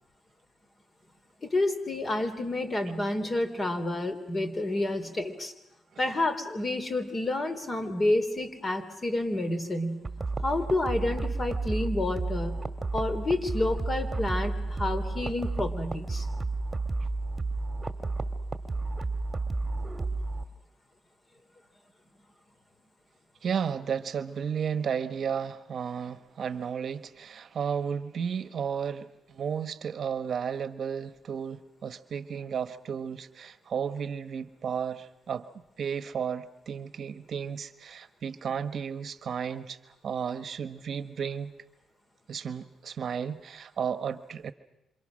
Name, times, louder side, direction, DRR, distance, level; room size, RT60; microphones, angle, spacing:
voice 1, 1.4-5.5 6.0-10.1 10.4-12.6 12.9-16.3, left 2 dB, 30° left, 8 dB, 3.4 m, -29 dB
sound 1, 10.0-20.4, right 3 dB, 20° right, 2.0 m, -32 dB
voice 2, 23.4-41.5 42.3-44.5, right 7 dB, 55° right, 12 dB, 1.1 m, -33 dB
27.5 x 27.0 x 6.4 m, 0.89 s
cardioid pair, 90°, 0 cm